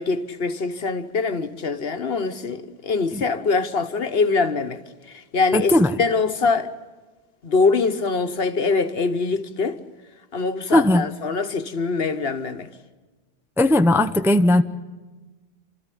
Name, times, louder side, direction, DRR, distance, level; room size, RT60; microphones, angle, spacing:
voice 1, 0.0-4.8 5.1-6.7 7.4-9.8 10.3-12.7, left 4 dB, 65° left, 1.4 m, -23 dB
voice 2, 5.5-5.9 10.7-11.0 13.6-14.6, left 1 dB, 5° right, 0.6 m, -17 dB
29.0 x 13.5 x 10.0 m
omnidirectional pair, 1.1 m